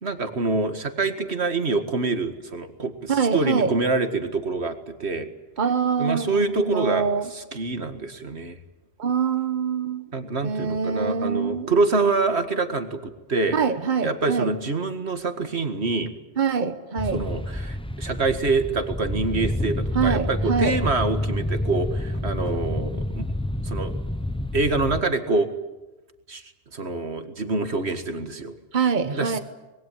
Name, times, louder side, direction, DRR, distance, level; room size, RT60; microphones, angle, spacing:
voice 1, 0.0-5.3 6.0-8.6 10.1-13.6 14.0-16.1 17.1-23.3 23.6-23.9 24.5-25.5 26.3-26.4 26.7-29.4, right 3 dB, 85° right, 7 dB, 2.1 m, -26 dB
voice 2, 3.1-3.7 5.6-7.3 9.0-10.0 10.4-11.7 13.5-14.5 16.4-17.2 19.9-20.8 28.7-29.4, right 6 dB, 50° right, 9 dB, 1.3 m, -24 dB
sound 1, 17.0-25.0, left 1 dB, 5° left, 0.7 m, -28 dB
25.5 x 21.5 x 9.2 m, 1.1 s
omnidirectional pair, 1.1 m